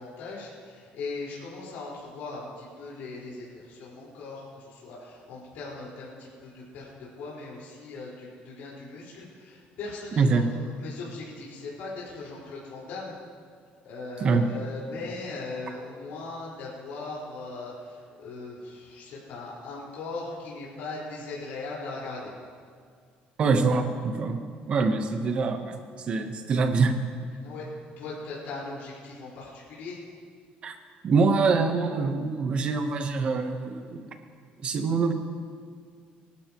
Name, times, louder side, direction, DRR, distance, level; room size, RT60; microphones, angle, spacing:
voice 1, 0.0-13.2 13.8-22.3 27.4-30.0, left 3 dB, 70° left, -6 dB, 4.6 m, -39 dB
voice 2, 10.2-10.5 14.2-14.4 23.4-24.4 24.7-25.8 26.1-26.9 30.6-30.8 31.0-34.1 34.6-35.1, right 4 dB, 35° right, 6 dB, 1.0 m, -24 dB
25.0 x 11.5 x 3.0 m, 2.1 s
cardioid pair, 175°, 3 cm